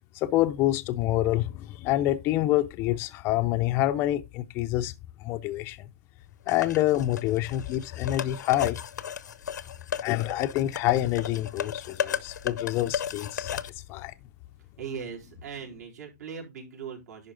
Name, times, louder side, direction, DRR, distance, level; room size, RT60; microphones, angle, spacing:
voice 1, 0.1-4.9 5.2-5.9 6.5-8.8 10.0-13.6 13.9-14.1, left 14 dB, 25° left, 0.5 m, -27 dB
sound 1, 6.5-13.7, left 8 dB, 85° left, 0.8 m, -35 dB
voice 2, 14.8-17.3, right 6 dB, 65° right, 4.2 m, -39 dB
11.0 x 4.5 x 3.8 m
hypercardioid pair, 150°, 9 cm